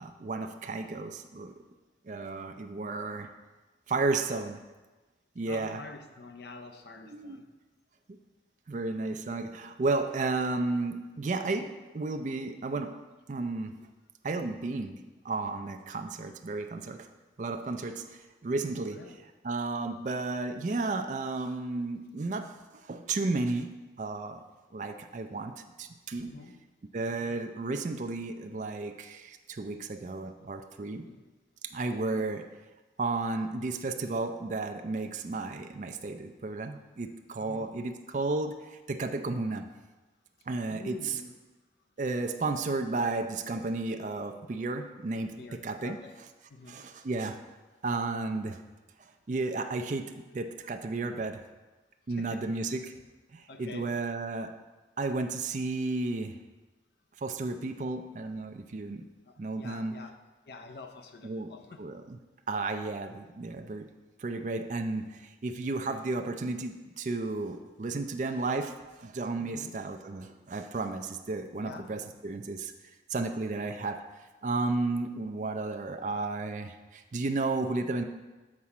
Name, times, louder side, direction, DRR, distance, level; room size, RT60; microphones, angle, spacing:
voice 1, 0.0-1.5 2.0-3.3 3.9-4.6 5.4-5.8 7.1-7.4 8.7-13.0 13.3-13.7 14.2-17.1 17.4-19.0 19.4-24.4 24.7-25.5 25.8-26.3 26.9-31.1 31.6-32.5 33.0-39.7 40.5-41.0 42.0-46.0 46.7-47.4 47.8-48.6 49.3-51.4 52.1-53.0 53.3-54.5 55.0-56.4 57.2-59.0 59.4-59.9 61.2-61.5 61.8-62.2 62.5-63.9 64.2-72.7 73.1-74.0 74.4-78.0, right 3 dB, 40° right, 6 dB, 0.4 m, -33 dB
voice 2, 5.5-7.5 14.3-14.5 18.9-19.2 26.2-26.6 27.1-27.4 30.9-31.3 37.4-37.7 40.4-41.4 45.4-46.2 46.5-46.8 52.1-52.7 53.5-53.9 59.2-60.2 60.5-61.9 69.4-69.8 71.6-72.1, left 3 dB, 60° left, 5 dB, 0.6 m, -47 dB
7.4 x 4.1 x 4.8 m, 1.2 s
head